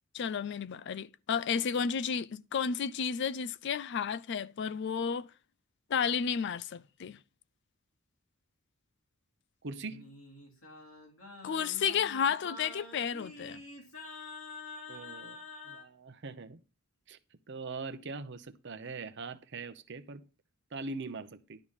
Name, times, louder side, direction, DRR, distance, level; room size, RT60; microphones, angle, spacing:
voice 1, 0.1-5.3 5.9-7.2 11.4-13.6, left 7 dB, 55° left, 0.4 m, -32 dB
voice 2, 9.6-10.1 14.9-15.4 15.7-16.6 17.1-17.2 17.5-20.2 20.7-21.6, right 3 dB, 55° right, 0.8 m, -42 dB
Singing, 9.8-15.9, left 3 dB, 70° left, 3.0 m, -47 dB
11.0 x 3.9 x 7.3 m
head